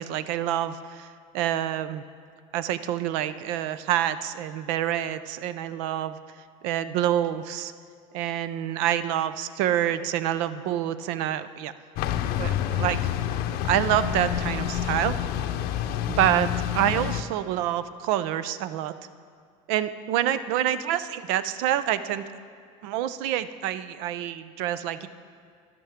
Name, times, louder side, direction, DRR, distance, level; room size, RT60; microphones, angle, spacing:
voice 1, 0.0-2.0 2.5-6.2 6.6-7.7 8.1-11.7 12.4-13.0 13.6-15.1 16.1-18.9 19.7-22.2 22.8-25.1, right 11 dB, 75° right, 13 dB, 0.5 m, -27 dB
sound 1, 12.0-17.2, left 10 dB, 65° left, 0.7 m, -28 dB
12.0 x 12.0 x 3.6 m, 2.1 s
supercardioid pair, 100°, 18 cm